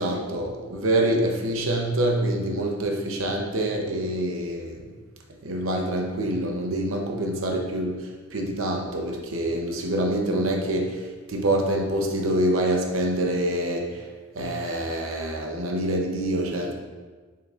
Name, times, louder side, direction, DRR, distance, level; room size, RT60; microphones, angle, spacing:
voice 1, 0.0-4.9 5.4-14.1 14.3-16.7, right 1 dB, 90° right, 2 dB, 0.8 m, -26 dB
7.0 x 5.9 x 2.5 m, 1.4 s
head